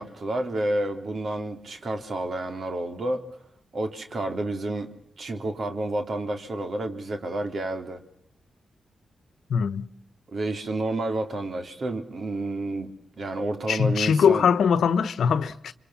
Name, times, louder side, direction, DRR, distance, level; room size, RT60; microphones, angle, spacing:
voice 1, 0.0-3.3 3.7-8.0 10.3-12.9 13.2-14.5, right 2 dB, 60° right, 3.6 m, -30 dB
voice 2, 9.5-9.9 13.7-15.7, left 7 dB, 75° left, 1.1 m, -22 dB
26.0 x 25.0 x 7.3 m
supercardioid pair, 45°, 0 cm